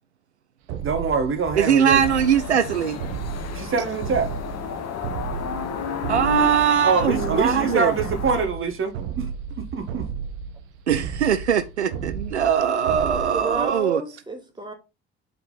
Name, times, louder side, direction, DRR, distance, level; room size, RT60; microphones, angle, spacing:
sound 1, 0.7-13.8, right 7 dB, 65° right, 1.1 m, -33 dB
voice 1, 0.8-2.0 3.5-4.3 6.8-9.3 9.6-10.1, right 5 dB, 40° right, 1.6 m, -24 dB
voice 2, 1.5-3.0 6.1-7.9 10.9-14.0, right 8 dB, 90° right, 0.5 m, -21 dB
sound 2, 2.0-8.5, left 7 dB, 50° left, 1.3 m, -32 dB
voice 3, 13.3-14.7, right 4 dB, 15° right, 2.5 m, -31 dB
7.6 x 4.5 x 3.9 m
figure-of-eight pair, 50°, 33 cm